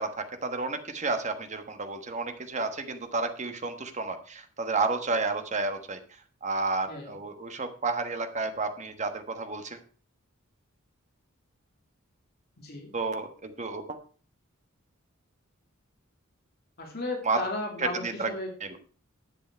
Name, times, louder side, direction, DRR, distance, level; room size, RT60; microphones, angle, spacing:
voice 1, 0.0-6.0 6.4-9.8 12.9-14.0 17.2-17.4 17.8-18.3 18.6-18.8, right 3 dB, 35° right, 7 dB, 1.3 m, -31 dB
voice 2, 12.6-12.9 16.8-18.5, left 2 dB, 50° left, 1 dB, 2.6 m, -35 dB
11.0 x 8.4 x 4.5 m, 0.41 s
head